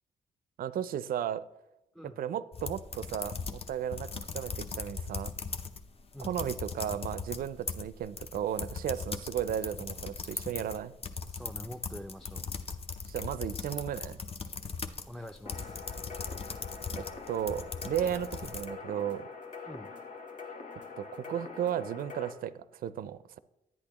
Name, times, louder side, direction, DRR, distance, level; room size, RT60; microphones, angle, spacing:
voice 1, 0.6-1.4 2.0-5.3 6.2-10.9 13.1-14.2 17.0-19.3 21.0-23.4, right 10 dB, 70° right, 16 dB, 0.4 m, -35 dB
sound 1, 2.5-5.8 6.1-18.7, left 5 dB, 40° left, 0.6 m, -39 dB
voice 2, 11.3-12.5 15.0-15.8 19.7-19.9, equal, ahead, 5 dB, 0.4 m, -45 dB
sound 2, 15.5-22.3, left 4 dB, 60° left, 1.1 m, -44 dB
10.5 x 8.4 x 2.9 m, 0.92 s
cardioid pair, 70°, 15 cm